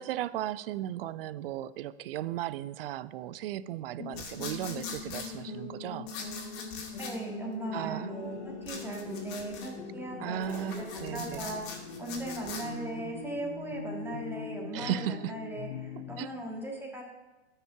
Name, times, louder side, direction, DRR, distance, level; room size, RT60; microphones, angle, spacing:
voice 1, 0.0-6.1 7.7-8.1 10.2-11.4 14.7-15.3 16.0-16.3, right 12 dB, 55° right, 18 dB, 0.5 m, -36 dB
sound 1, 4.0-16.2, left 4 dB, 65° left, 1.3 m, -42 dB
sound 2, 4.1-5.3 6.1-7.1 8.6-9.7 10.3-12.6, left 5 dB, 45° left, 2.3 m, -42 dB
voice 2, 7.0-8.4 8.6-17.0, right 2 dB, 5° right, -1 dB, 1.6 m, -38 dB
sound 3, 7.8-14.4, left 7 dB, 85° left, 0.8 m, -53 dB
12.5 x 5.6 x 4.8 m, 1.1 s
hypercardioid pair, 125°, 34 cm